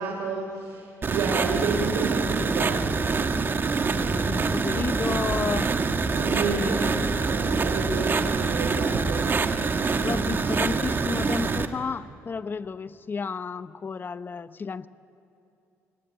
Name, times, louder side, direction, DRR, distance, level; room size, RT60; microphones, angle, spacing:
voice 1, 0.0-2.9 6.1-7.0 7.3-9.4, right 4 dB, 85° right, 1 dB, 3.3 m, -30 dB
sound 1, 1.0-11.7, right 4 dB, 40° right, 1.7 m, -25 dB
voice 2, 3.9-5.7 6.3-7.3 10.0-14.9, left 5 dB, 35° left, 13 dB, 0.9 m, -32 dB
sound 2, 3.9-9.4, right 2 dB, 20° right, 4.3 m, -38 dB
29.5 x 21.5 x 9.0 m, 2.8 s
supercardioid pair, 80°, 6 cm